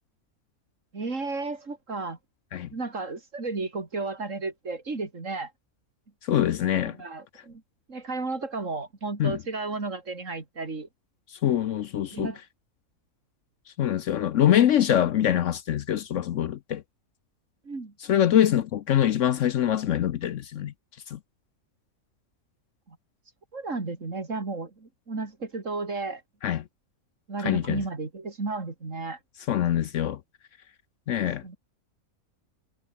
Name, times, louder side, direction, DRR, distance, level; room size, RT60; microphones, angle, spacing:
voice 1, 0.9-2.2 2.7-5.5 6.8-7.6 7.9-10.9 12.1-12.4 17.6-17.9 22.9-23.0 23.5-26.2 27.3-29.2 31.2-31.6, right 3 dB, 60° right, 3.5 m, -33 dB
voice 2, 6.2-7.0 9.2-9.4 11.4-12.3 13.8-16.8 18.1-20.7 21.1-21.2 26.4-26.6 27.4-27.8 29.5-30.2 31.1-31.4, left 11 dB, 65° left, 0.9 m, -24 dB
omnidirectional pair, 1.5 m